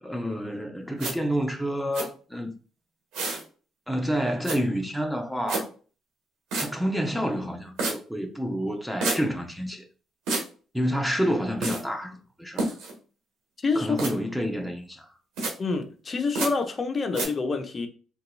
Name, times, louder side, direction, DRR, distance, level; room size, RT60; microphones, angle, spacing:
voice 1, 0.0-2.6 3.9-5.7 6.6-9.8 10.7-12.7 13.7-15.1, equal, ahead, 0.7 m, -29 dB
sound 1, 1.0-1.1 1.9-2.1 3.1-3.4 4.4-4.6 5.5-5.6 6.5-6.7 7.8-7.9 9.0-9.2 10.3-10.5 11.6-11.8 12.6-12.9 14.0-14.1 15.4-15.5 16.4-16.5 17.1-17.3, right 2 dB, 80° right, 1.2 m, -28 dB
voice 2, 13.6-14.0 15.6-17.9, left 4 dB, 40° left, 0.7 m, -27 dB
3.8 x 2.8 x 2.3 m
supercardioid pair, 65°, 0 cm